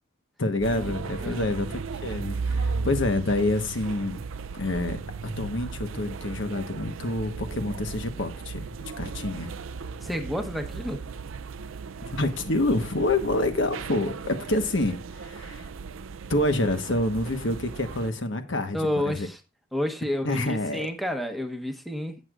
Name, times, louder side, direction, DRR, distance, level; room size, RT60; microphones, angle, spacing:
voice 1, 0.4-4.2 4.5-5.0 5.4-8.7 9.0-9.5 12.0-15.7 16.3-18.8 19.0-19.3 20.2-20.9, left 2 dB, 65° left, 1.2 m, -27 dB
sound 1, 0.6-18.1, right 4 dB, 75° right, 0.5 m, -36 dB
voice 2, 1.2-1.5 10.0-11.0 18.7-19.4 19.7-22.2, left 1 dB, ahead, 1.1 m, -30 dB
17.0 x 6.5 x 2.5 m
head